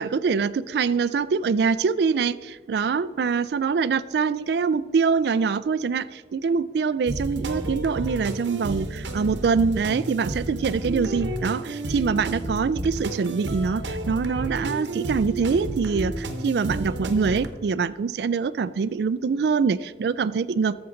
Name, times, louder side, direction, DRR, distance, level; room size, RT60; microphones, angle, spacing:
voice 1, 0.0-20.7, right 5 dB, 65° right, 16 dB, 0.3 m, -24 dB
sound 1, 7.1-17.5, right 2 dB, 85° right, 0.9 m, -31 dB
13.0 x 7.0 x 3.8 m, 1.4 s
head